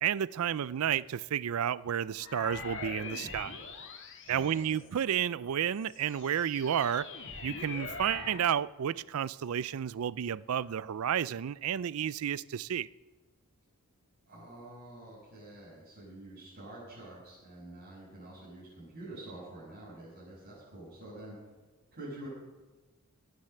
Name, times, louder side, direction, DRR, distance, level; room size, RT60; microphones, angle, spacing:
voice 1, 0.0-3.6 4.3-7.1 7.4-12.9, right 9 dB, 70° right, 0.4 m, -31 dB
sound 1, 2.2-5.1 5.7-8.5, left 4 dB, 60° left, 2.0 m, -43 dB
voice 2, 4.2-4.9 14.3-21.3 21.9-22.3, right 1 dB, 50° right, 6.5 m, -47 dB
17.5 x 9.1 x 6.7 m
head